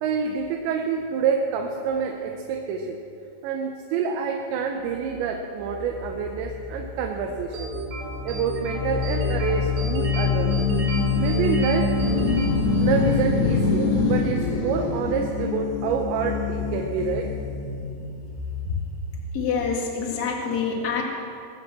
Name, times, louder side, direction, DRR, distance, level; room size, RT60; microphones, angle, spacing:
voice 1, 0.0-3.0 3.4-7.7 8.2-10.8 11.2-11.9 12.8-17.3, right 6 dB, 85° right, 2 dB, 3.1 m, -27 dB
sound 1, 5.7-19.8, left 4 dB, 80° left, 4.0 m, -26 dB
sound 2, 7.5-13.3, right 3 dB, 50° right, 4.0 m, -34 dB
voice 2, 19.3-21.0, left 5 dB, 45° left, -1 dB, 1.3 m, -26 dB
21.5 x 7.7 x 7.4 m, 2.6 s
omnidirectional pair, 5.1 m